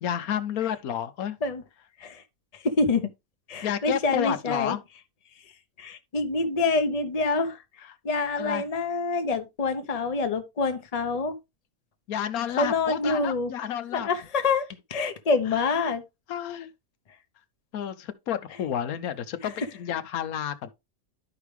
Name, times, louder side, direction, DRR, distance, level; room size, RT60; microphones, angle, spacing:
voice 1, 0.0-1.4 3.6-4.8 8.4-8.6 12.1-14.1 15.5-15.9 16.3-16.7 17.7-20.7, left 9 dB, 80° left, 1.2 m, -31 dB
voice 2, 2.5-3.1 3.5-4.8 5.8-7.6 8.0-11.4 12.6-13.5 13.9-16.0, left 3 dB, 30° left, 0.9 m, -26 dB
11.5 x 5.0 x 3.2 m
omnidirectional pair, 1.5 m